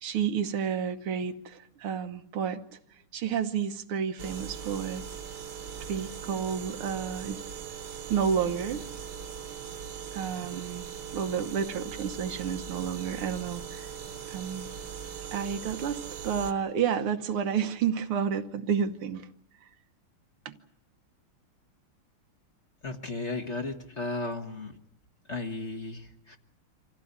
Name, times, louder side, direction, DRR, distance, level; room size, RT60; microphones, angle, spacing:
voice 1, 0.0-2.8 3.1-5.0 5.8-7.4 8.1-8.8 10.1-10.9 11.1-13.9 14.3-14.7 15.3-19.3 20.5-20.6, right 7 dB, 80° right, 8 dB, 2.0 m, -30 dB
sound 1, 4.2-16.5, right 7 dB, 55° right, 1.7 m, -40 dB
voice 2, 22.8-24.8 25.3-26.4, left 3 dB, 35° left, 5 dB, 1.6 m, -35 dB
26.0 x 15.5 x 9.5 m, 0.77 s
omnidirectional pair, 2.4 m